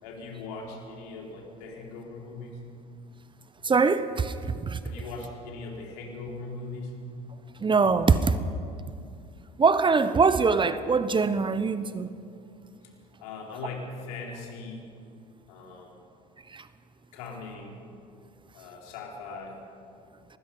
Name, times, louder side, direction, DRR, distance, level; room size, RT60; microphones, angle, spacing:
voice 1, 0.0-2.6 4.8-7.0 13.2-14.8 15.5-16.0 17.1-17.7 18.5-19.6, left 3 dB, 70° left, 0 dB, 4.2 m, -40 dB
voice 2, 3.6-4.3 4.6-4.8 7.6-8.4 9.6-12.1 16.5-16.7, right 4 dB, 25° right, 13 dB, 1.0 m, -23 dB
23.5 x 19.5 x 5.6 m, 2.4 s
hypercardioid pair, 70°, 20 cm